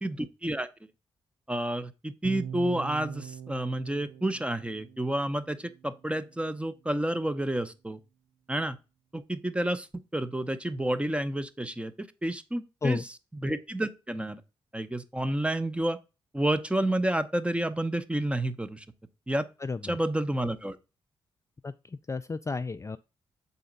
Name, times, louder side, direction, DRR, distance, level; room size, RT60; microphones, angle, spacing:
voice 1, 0.0-0.7 1.5-8.0 8.5-8.8 9.1-9.9 10.1-13.0 13.3-14.4 14.7-16.0 16.3-18.8 19.3-19.5 19.8-20.8, right 1 dB, 10° right, 0.8 m, -30 dB
sound 1, 2.2-6.3, right 8 dB, 80° right, 0.4 m, -42 dB
voice 2, 19.6-20.0 21.6-23.0, left 4 dB, 25° left, 0.4 m, -32 dB
6.9 x 4.2 x 3.9 m
supercardioid pair, 50°, 11 cm